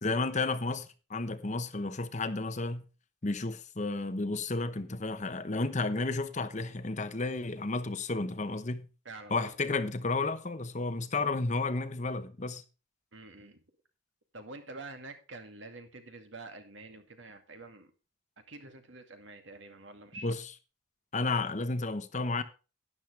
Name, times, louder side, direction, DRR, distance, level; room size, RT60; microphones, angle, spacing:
voice 1, 0.0-2.9 3.2-8.9 9.3-12.6 20.2-20.5 21.1-22.4, left 3 dB, 35° left, 0.9 m, -32 dB
voice 2, 9.0-9.5 13.1-13.6 14.3-17.9 18.5-20.3, right 2 dB, 65° right, 2.2 m, -47 dB
12.0 x 10.5 x 3.3 m
head